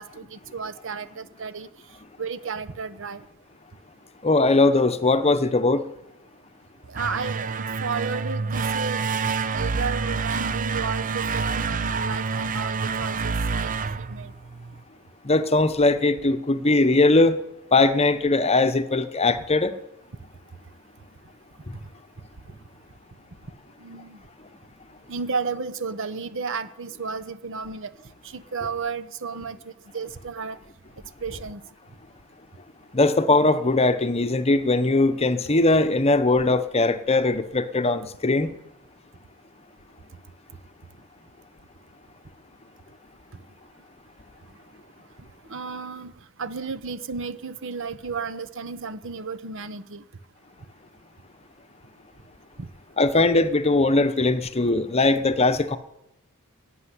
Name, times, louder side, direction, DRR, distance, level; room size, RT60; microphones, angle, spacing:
voice 1, 0.0-1.7 2.2-3.2 6.9-13.7 14.1-14.3 23.8-24.2 25.1-27.9 28.3-29.6 29.9-30.6 31.2-31.6 45.5-46.1 46.4-50.0 52.6-52.7, right 5 dB, 65° right, 0.9 m, -33 dB
voice 2, 4.2-5.8 15.2-17.4 17.7-19.7 32.9-38.5 53.0-55.8, left 2 dB, 30° left, 0.9 m, -20 dB
sound 1, 6.8-14.8, right 4 dB, 40° right, 0.6 m, -27 dB
17.5 x 8.1 x 9.9 m
head